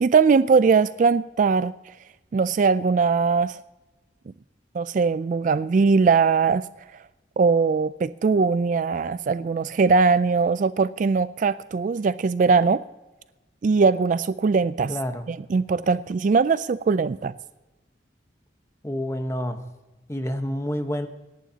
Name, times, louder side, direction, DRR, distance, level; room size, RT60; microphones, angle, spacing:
voice 1, 0.0-1.7 2.3-3.6 4.7-6.7 7.4-12.8 13.6-14.9 15.3-17.3, right 4 dB, 45° right, 15 dB, 0.3 m, -20 dB
voice 2, 14.9-15.3 18.8-19.6 20.1-21.1, equal, 15° left, 7 dB, 1.0 m, -28 dB
26.0 x 11.0 x 2.8 m, 1.1 s
head